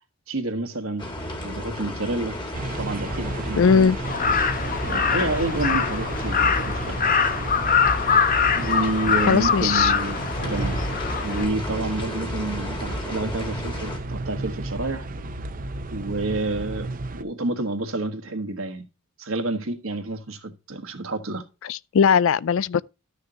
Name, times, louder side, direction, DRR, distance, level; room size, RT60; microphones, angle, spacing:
voice 1, 0.3-1.1 1.4-2.4 2.8-3.9 4.9-7.0 8.5-10.2 10.5-10.9 11.2-15.1 15.9-18.9 19.2-21.4, right 2 dB, 65° right, 1.4 m, -29 dB
sound 1, 1.0-14.0, left 1 dB, 20° left, 2.1 m, -34 dB
sound 2, 2.5-17.2, right 2 dB, 40° right, 0.8 m, -33 dB
voice 2, 3.6-4.0 9.3-9.9 21.6-22.8, left 6 dB, 60° left, 0.4 m, -19 dB
Crow, 4.0-11.4, left 6 dB, 40° left, 1.0 m, -23 dB
13.0 x 6.6 x 2.8 m
head